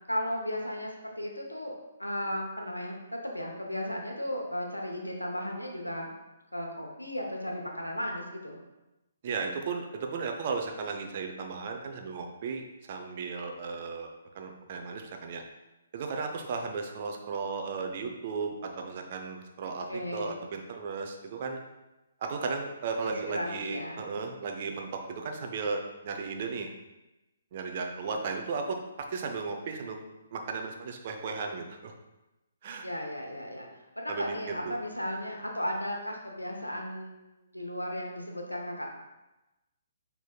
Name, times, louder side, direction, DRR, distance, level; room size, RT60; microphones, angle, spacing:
voice 1, 0.1-1.7 2.0-6.1 6.5-8.6 19.9-20.4 23.0-24.0 32.8-33.7 34.0-38.9, equal, 85° left, 1 dB, 0.8 m, -35 dB
voice 2, 9.2-14.1 14.3-15.4 15.9-21.6 22.2-26.7 27.5-28.8 29.1-30.0 30.3-31.9 32.6-32.9 34.1-34.8, right 4 dB, 40° right, 3 dB, 0.5 m, -35 dB
6.1 x 3.4 x 2.3 m, 1.0 s
figure-of-eight pair, 130°, 0 cm